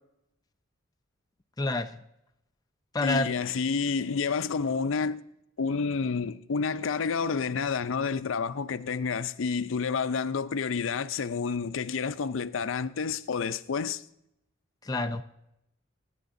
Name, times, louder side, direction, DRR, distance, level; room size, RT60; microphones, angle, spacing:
voice 1, 1.6-2.0 2.9-3.3 14.8-15.2, left 2 dB, 20° left, 0.4 m, -28 dB
voice 2, 3.0-5.2 5.6-14.0, left 5 dB, 75° left, 0.5 m, -29 dB
24.0 x 9.9 x 2.6 m
head